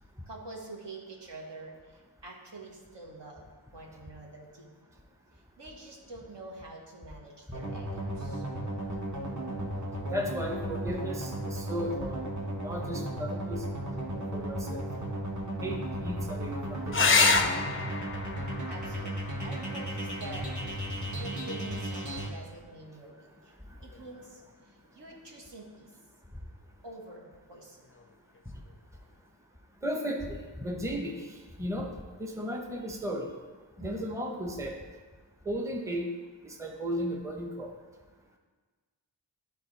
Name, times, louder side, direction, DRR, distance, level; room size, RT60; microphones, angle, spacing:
voice 1, 0.3-4.7 5.6-8.4 11.6-11.7 18.7-20.5 21.2-23.5 23.8-25.9 26.8-27.8 33.8-34.1, right 2 dB, 70° right, -1 dB, 1.3 m, -46 dB
sound 1, 7.5-22.3, right 1 dB, 40° right, 1.1 m, -35 dB
voice 2, 10.1-12.3 12.6-13.6 14.1-14.8 15.6-17.3 29.8-31.2 31.6-31.9 32.2-33.3 33.8-34.8 35.5-36.1 36.4-37.7, equal, 5° right, 2 dB, 0.7 m, -35 dB
sound 2, 16.9-21.9 23.8-24.5 27.9-28.0 28.4-28.5, left 4 dB, 30° left, 0.4 m, -29 dB
11.5 x 4.1 x 3.2 m, 1.4 s
wide cardioid pair, 60°, 44 cm